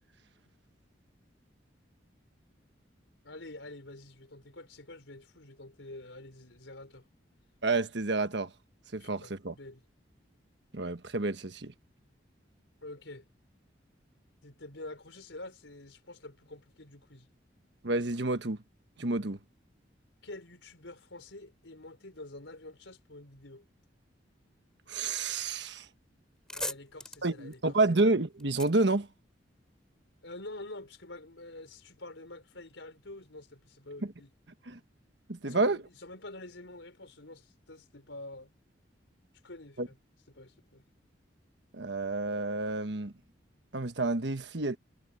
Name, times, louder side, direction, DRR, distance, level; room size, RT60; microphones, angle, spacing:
voice 1, 3.2-7.1 9.0-9.8 12.8-13.3 14.4-17.3 20.2-23.7 26.5-27.8 30.2-34.3 35.4-38.5 39.4-40.0 40.3-40.8, left 2 dB, 85° left, 4.4 m, -47 dB
voice 2, 7.6-8.5 8.9-9.5 10.7-11.7 17.8-18.6 19.0-19.4 24.9-25.9 27.2-29.1 34.7-34.8 35.3-35.8 39.8-39.9 41.7-43.1 43.7-44.8, right 2 dB, 65° right, 1.4 m, -29 dB
sound 1, 26.2-29.8, left 1 dB, 5° left, 4.0 m, -42 dB
head